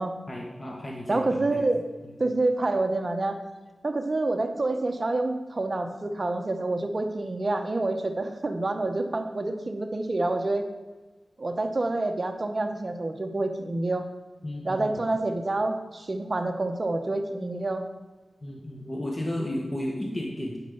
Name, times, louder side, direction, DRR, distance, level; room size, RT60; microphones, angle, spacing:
voice 1, 0.3-1.7 2.0-2.1 14.4-15.0 18.4-20.6, left 1 dB, 30° left, -2 dB, 1.7 m, -33 dB
voice 2, 1.1-1.8 2.2-3.4 3.8-10.7 11.4-14.0 14.6-17.8, right 2 dB, 40° right, 5 dB, 1.1 m, -27 dB
10.0 x 5.5 x 7.1 m, 1.3 s
wide cardioid pair, 90°, 0 cm